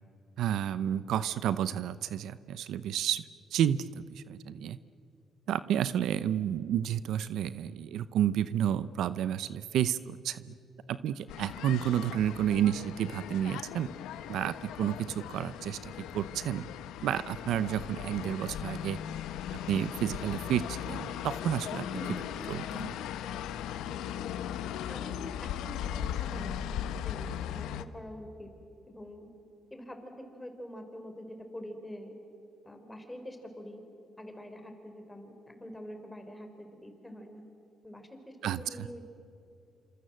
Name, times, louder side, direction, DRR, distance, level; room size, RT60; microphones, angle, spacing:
voice 1, 0.4-3.2 3.5-4.8 5.5-10.5 10.9-13.9 14.3-16.7 17.0-19.0 19.7-21.9 22.5-23.0 38.4-38.9, right 10 dB, 80° right, 15 dB, 0.7 m, -31 dB
sound 1, 11.3-27.8, left 10 dB, 90° left, 1.0 m, -38 dB
voice 2, 21.9-22.2 24.9-26.5 27.0-28.5 28.9-29.3 29.7-32.1 32.6-33.8 34.2-37.4 37.8-39.1, equal, 10° left, 5 dB, 4.9 m, -45 dB
28.0 x 27.0 x 7.8 m, 2.6 s
cardioid pair, 90°, 0 cm